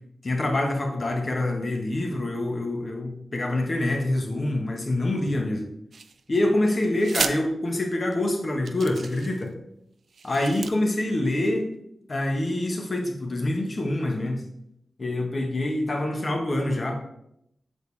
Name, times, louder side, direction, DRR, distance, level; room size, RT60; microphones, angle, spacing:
voice 1, 0.2-5.6 6.3-9.5 10.2-11.7 12.1-14.4 15.0-16.9, left 1 dB, 45° left, 2 dB, 1.5 m, -26 dB
sound 1, 5.9-6.4 7.0-7.4 8.1-8.2 8.6-9.5 10.1-10.7, right 5 dB, 75° right, 0.5 m, -33 dB
8.0 x 6.6 x 3.5 m, 0.76 s
wide cardioid pair, 80°, 0 cm